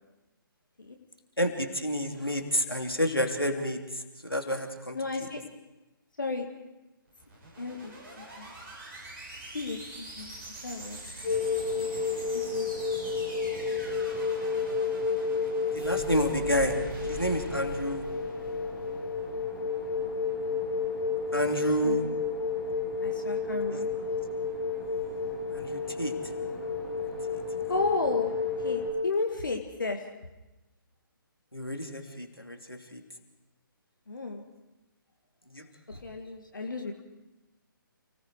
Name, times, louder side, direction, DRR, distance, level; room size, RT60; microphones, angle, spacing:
voice 1, 1.4-5.3 15.7-16.8 17.1-18.1 21.3-22.0 23.7-23.8 25.5-26.1 27.3-27.4 31.5-33.0 35.5-35.7, equal, 90° left, 3 dB, 3.0 m, -30 dB
voice 2, 4.9-5.4 6.2-6.5 7.6-8.5 9.5-10.3 10.6-11.0 11.7-11.9 12.5-12.7 21.8-22.1 23.0-24.1 27.7-28.3 28.6-30.0 34.1-34.4 36.0-37.0, left 3 dB, 60° left, 3 dB, 2.0 m, -33 dB
sound 1, 7.1-19.4, right 2 dB, 35° right, 7.8 m, -44 dB
sound 2, 11.2-28.9, left 4 dB, 10° left, 6.4 m, -31 dB
29.5 x 18.5 x 4.8 m, 1.0 s
figure-of-eight pair, 140°, 12 cm